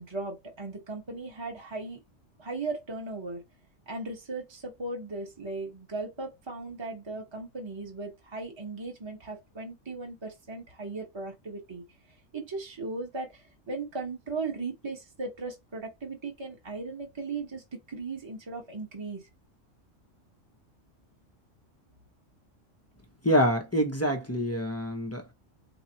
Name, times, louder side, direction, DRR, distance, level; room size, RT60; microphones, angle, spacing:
voice 1, 0.0-2.0 2.4-3.4 3.9-11.8 12.3-17.6 17.9-19.2, right 3 dB, 20° right, 1.1 m, -37 dB
voice 2, 23.2-25.3, equal, 15° left, 0.6 m, -26 dB
4.1 x 3.0 x 2.7 m
omnidirectional pair, 1.3 m